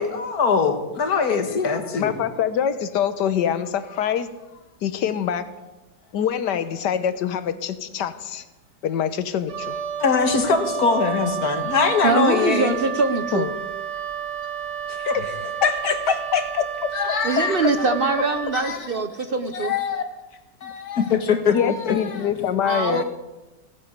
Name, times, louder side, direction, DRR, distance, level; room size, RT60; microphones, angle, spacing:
voice 1, 0.0-2.2 10.0-12.8 14.9-15.2 15.6-16.4 16.9-17.6 18.5-18.9 19.5-20.0 20.6-22.3 22.8-23.0, left 5 dB, 65° left, 7 dB, 2.0 m, -23 dB
voice 2, 2.0-4.3 4.8-5.5 6.1-8.4 8.8-9.8 13.3-13.5 21.5-23.0, left 8 dB, 80° left, 12 dB, 1.6 m, -25 dB
Wind instrument woodwind instrument, 9.5-18.6, right 9 dB, 75° right, 2.1 m, -30 dB
voice 3, 12.0-13.5 17.2-19.7 22.6-23.0, right 4 dB, 45° right, 9 dB, 0.8 m, -23 dB
16.5 x 9.4 x 8.0 m, 1.1 s
omnidirectional pair, 1.8 m